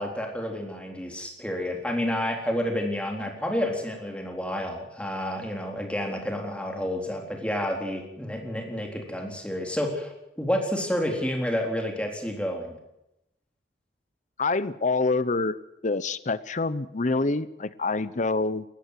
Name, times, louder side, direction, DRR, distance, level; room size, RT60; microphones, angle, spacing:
voice 1, 0.0-12.8, equal, 5° left, 2 dB, 3.8 m, -30 dB
voice 2, 14.4-15.5 15.8-18.6, left 3 dB, 45° left, 16 dB, 0.8 m, -26 dB
18.5 x 15.0 x 9.4 m, 0.87 s
head